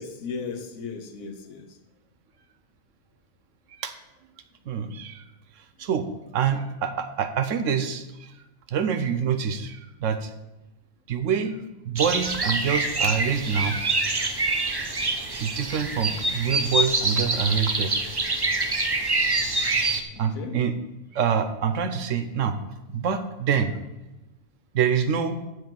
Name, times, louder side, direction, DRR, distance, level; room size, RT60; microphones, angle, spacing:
voice 1, 0.0-1.7 20.1-20.6, left 5 dB, 80° left, 1.4 m, -36 dB
voice 2, 4.7-5.2 5.8-6.1 6.3-8.3 8.7-10.3 11.1-11.6 11.8-13.9 15.4-17.9 20.2-20.7 21.1-22.6 22.9-23.7 24.7-25.4, right 7 dB, 70° right, 1.1 m, -26 dB
sound 1, 12.0-20.0, right 2 dB, 30° right, 0.4 m, -25 dB
9.6 x 4.6 x 7.7 m
omnidirectional pair, 1.4 m